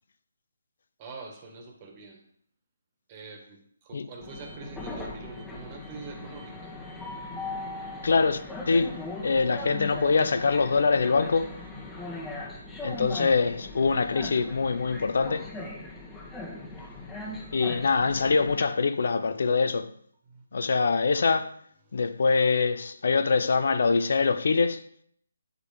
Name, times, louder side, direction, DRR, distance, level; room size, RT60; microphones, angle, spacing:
voice 1, 1.0-2.2 3.1-6.7 20.3-20.4 21.9-22.0, right 3 dB, 25° right, 1.7 m, -44 dB
Train, 4.2-18.6, left 2 dB, 10° left, 1.4 m, -39 dB
voice 2, 8.0-8.4 8.7-9.0 9.2-11.6 12.8-15.5 17.5-19.9 20.5-21.5 21.9-24.8, left 4 dB, 60° left, 0.7 m, -24 dB
8.9 x 4.9 x 5.1 m
hypercardioid pair, 160°, 0 cm